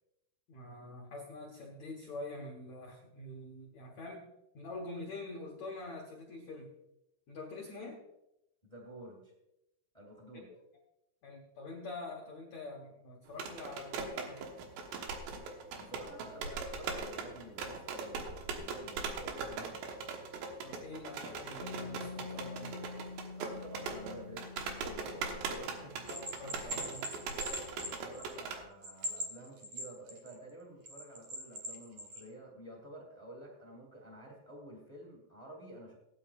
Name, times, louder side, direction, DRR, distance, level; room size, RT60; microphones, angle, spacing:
voice 1, 0.5-6.7 7.3-8.0 10.3-10.6 11.2-14.5 20.6-22.8 26.1-27.4 27.8-27.9, left 2 dB, 85° left, 0 dB, 1.5 m, -46 dB
voice 2, 8.6-9.3 9.9-10.5 15.8-19.8 23.3-26.0 26.4-26.9 27.9-36.0, right 1 dB, 20° left, 0 dB, 1.0 m, -50 dB
sound 1, 13.3-28.6, right 4 dB, 75° right, 3.3 m, -41 dB
Piano, 21.6-28.9, left 4 dB, 70° left, 1.9 m, -49 dB
Bell, 26.1-28.5 28.8-30.3 30.9-32.2, equal, 55° right, 2.0 m, -41 dB
18.5 x 9.9 x 2.5 m, 0.88 s
omnidirectional pair, 5.2 m